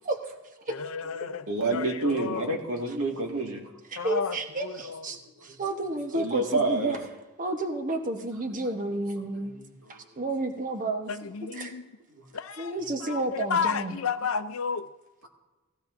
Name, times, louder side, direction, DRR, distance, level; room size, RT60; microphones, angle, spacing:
voice 1, 0.7-2.5 4.0-5.1 11.1-11.9 12.3-14.9, left 6 dB, 70° left, 0.6 m, -32 dB
voice 2, 1.5-3.7 5.5-5.6 6.1-7.0 8.7-8.8 9.9-10.1 12.1-12.2, right 2 dB, 80° right, 2.0 m, -28 dB
voice 3, 3.9-7.0 7.4-9.6 9.9-11.7 12.6-14.0, right 2 dB, 40° right, 1.1 m, -31 dB
17.0 x 15.5 x 2.6 m
head